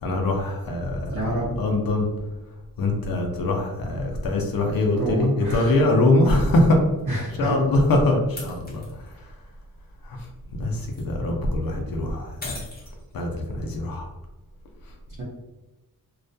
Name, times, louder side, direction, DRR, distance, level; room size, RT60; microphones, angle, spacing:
voice 1, 0.0-1.2 1.6-2.1 2.8-6.8 7.4-9.3 10.0-10.3 10.6-12.6 13.1-14.1, left 2 dB, 75° left, 1 dB, 0.5 m, -23 dB
voice 2, 1.1-1.5 4.9-5.8 7.1-7.6 15.2-15.3, right 1 dB, 60° right, -7 dB, 0.8 m, -28 dB
sound 1, 5.7-5.8 7.0-7.1 8.4-9.1 10.6-11.1 12.4-13.3, left 2 dB, 25° left, 0.8 m, -40 dB
2.3 x 2.1 x 2.6 m, 1.1 s
wide cardioid pair, 100°, 36 cm